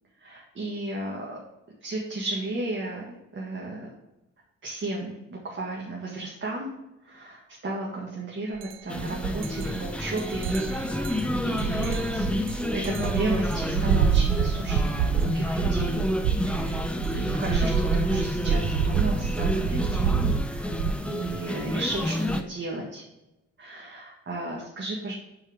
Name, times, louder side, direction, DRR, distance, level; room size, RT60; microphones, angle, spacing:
voice 1, 0.2-1.4 1.8-3.9 4.6-6.7 7.0-12.4 12.7-16.0 16.5-20.8 21.0-23.0 23.6-25.1, right 2 dB, 40° right, -3 dB, 1.9 m, -34 dB
sound 1, 8.6-8.7 9.1-20.9, right 7 dB, 85° right, 0.6 m, -27 dB
sound 2, 8.9-22.4, left 1 dB, 5° left, 0.7 m, -29 dB
8.9 x 4.5 x 3.5 m, 0.94 s
cardioid pair, 90°, 30 cm